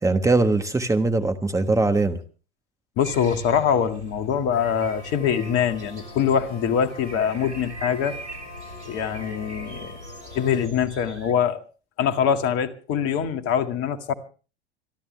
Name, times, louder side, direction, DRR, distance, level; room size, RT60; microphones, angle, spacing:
voice 1, 0.0-2.2, right 3 dB, 10° right, 7 dB, 1.3 m, -21 dB
voice 2, 3.0-8.2 8.8-10.0 10.4-11.6 12.0-14.1, left 8 dB, 45° left, 8 dB, 2.1 m, -23 dB
sound 1, 3.0-11.3, right 1 dB, 85° right, 3.3 m, -41 dB
sound 2, 4.5-10.7, left 3 dB, 65° left, 6.5 m, -44 dB
26.5 x 12.5 x 3.3 m, 0.37 s
figure-of-eight pair, 85°, 33 cm